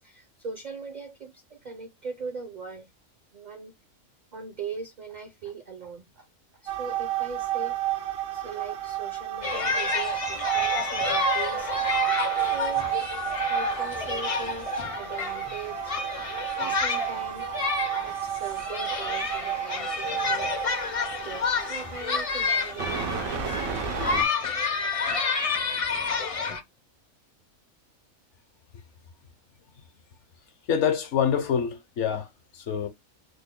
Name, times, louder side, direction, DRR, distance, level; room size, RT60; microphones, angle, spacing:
voice 1, 0.0-2.9 3.3-3.7 4.3-6.3 6.6-11.7 12.4-13.0 13.5-14.7 15.0-15.9 16.6-17.5 18.0-20.5 21.2-23.6, right 4 dB, 55° right, 0.5 m, -40 dB
sound 1, 6.7-24.2, right 12 dB, 90° right, 1.2 m, -31 dB
sound 2, 9.4-26.6, left 4 dB, 40° left, 0.5 m, -29 dB
voice 2, 30.7-32.3 32.5-32.9, left 7 dB, 65° left, 1.0 m, -25 dB
3.4 x 2.1 x 3.5 m
omnidirectional pair, 1.4 m